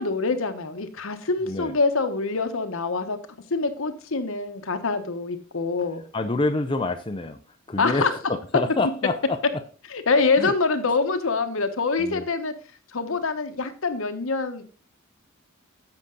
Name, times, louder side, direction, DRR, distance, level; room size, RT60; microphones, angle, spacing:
voice 1, 0.0-3.2 3.5-6.0 7.8-8.1 9.9-12.5 12.9-14.6, left 4 dB, 70° left, 9 dB, 1.1 m, -25 dB
voice 2, 6.1-7.4 7.7-9.6 10.4-10.5 12.0-12.3, left 2 dB, 25° left, 6 dB, 0.6 m, -27 dB
9.9 x 7.2 x 3.9 m, 0.36 s
head